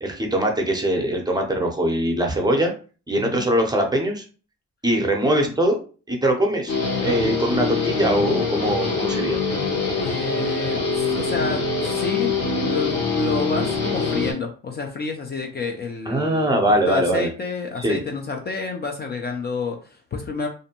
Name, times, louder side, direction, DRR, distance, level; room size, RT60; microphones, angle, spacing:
voice 1, 0.0-2.7 3.1-4.2 4.8-5.8 6.1-6.7 7.0-9.4 16.1-17.3 17.8-18.0, right 1 dB, 15° right, 2 dB, 0.6 m, -22 dB
voice 2, 3.2-3.5 5.2-5.6 10.0-12.3 12.6-20.5, left 4 dB, 35° left, 3 dB, 0.5 m, -29 dB
Guitar, 6.7-14.3, left 4 dB, 55° left, 1.1 m, -24 dB
2.6 x 2.1 x 2.8 m, 0.37 s
cardioid pair, 90°, 30 cm